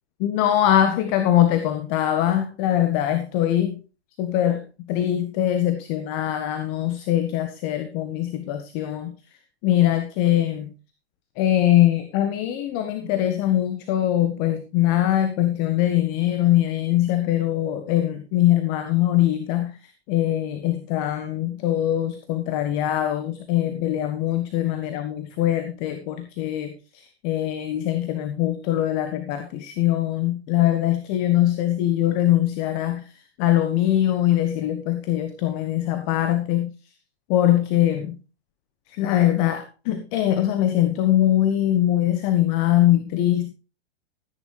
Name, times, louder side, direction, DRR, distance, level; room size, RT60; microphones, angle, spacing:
voice 1, 0.2-3.8 4.2-4.6 4.9-9.1 9.6-10.7 11.4-36.7 37.3-38.1 38.9-43.5, left 12 dB, 35° left, 8 dB, 1.5 m, -22 dB
14.5 x 9.6 x 3.3 m, 0.33 s
figure-of-eight pair, 110°, 33 cm